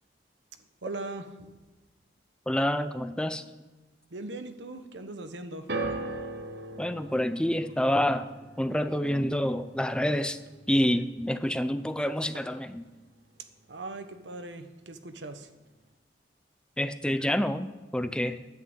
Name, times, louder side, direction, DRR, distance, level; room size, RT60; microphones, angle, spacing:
voice 1, 0.8-1.3 4.1-5.7 13.7-15.5, right 2 dB, 85° right, 8 dB, 1.2 m, -39 dB
voice 2, 2.5-3.4 6.8-8.3 8.6-10.4 10.7-12.8 16.8-17.7 17.9-18.4, equal, 5° left, 11 dB, 0.5 m, -27 dB
sound 1, 5.7-12.0 12.2-12.9 13.6-13.7, right 2 dB, 65° right, 1.2 m, -40 dB
11.0 x 9.7 x 8.1 m, 1.2 s
head